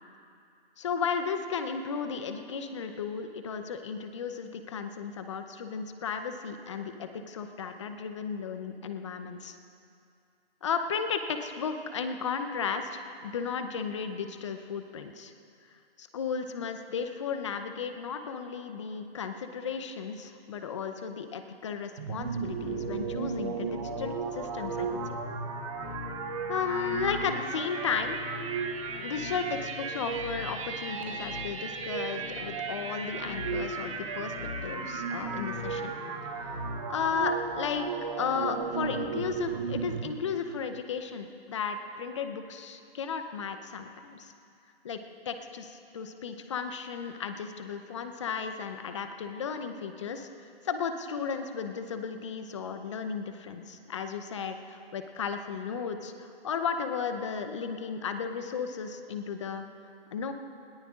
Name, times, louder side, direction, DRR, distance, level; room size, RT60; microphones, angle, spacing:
voice 1, 0.8-9.6 10.6-15.3 16.0-25.0 26.5-28.2 29.0-34.3 34.6-35.9 36.9-37.9 38.2-44.3 44.8-45.0 45.3-50.3 50.6-59.6 60.1-60.3, left 6 dB, 30° left, 8 dB, 0.7 m, -34 dB
sound 1, 22.0-40.1, right 5 dB, 30° right, 1.0 m, -35 dB
sound 2, 22.5-37.3, left 6 dB, 85° left, 0.8 m, -44 dB
21.0 x 18.0 x 2.5 m, 2.5 s
hypercardioid pair, 155°, 31 cm